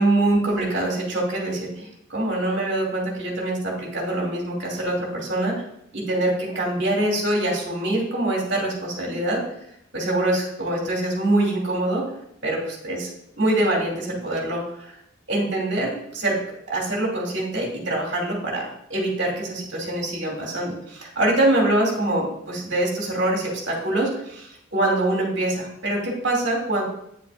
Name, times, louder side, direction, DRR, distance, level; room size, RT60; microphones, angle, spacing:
voice 1, 0.0-5.6 5.9-9.4 9.9-12.1 12.4-13.1 13.4-14.9 15.3-16.4 16.7-26.8, right 1 dB, 60° right, -1 dB, 2.5 m, -24 dB
9.2 x 7.6 x 2.5 m, 0.76 s
head